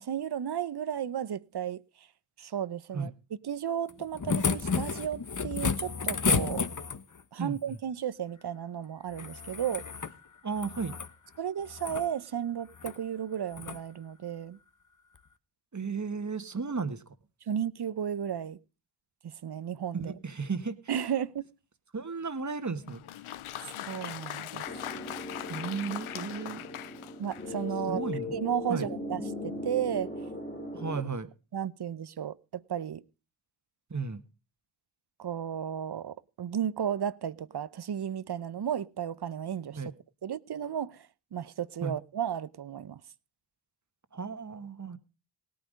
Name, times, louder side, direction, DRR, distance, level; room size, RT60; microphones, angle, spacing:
voice 1, 0.0-2.1 2.4-3.1 3.4-6.6 7.3-9.8 11.4-14.6 17.5-18.6 19.2-20.1 20.9-21.4 23.7-24.7 27.2-30.1 31.5-33.0 35.2-39.8 40.2-43.0, right 9 dB, 55° right, 0.8 m, -34 dB
sound 1, 3.9-7.2 9.1-10.2 10.5-11.1 11.6-12.1 12.7-13.0 13.5-13.8 15.2-15.3, left 5 dB, 40° left, 1.2 m, -31 dB
voice 2, 7.4-7.8 10.4-10.9 15.7-17.0 19.9-20.8 21.9-23.0 25.5-26.6 27.9-28.3 28.7-28.9 30.7-31.3 33.9-34.2 39.7-39.9 41.8-41.9 44.1-45.0, right 5 dB, 35° right, 1.6 m, -34 dB
Applause, 22.8-27.7, left 12 dB, 90° left, 0.7 m, -41 dB
sound 2, 24.7-31.0, left 2 dB, 20° left, 2.7 m, -39 dB
17.5 x 9.4 x 5.2 m
cardioid pair, 40°, 49 cm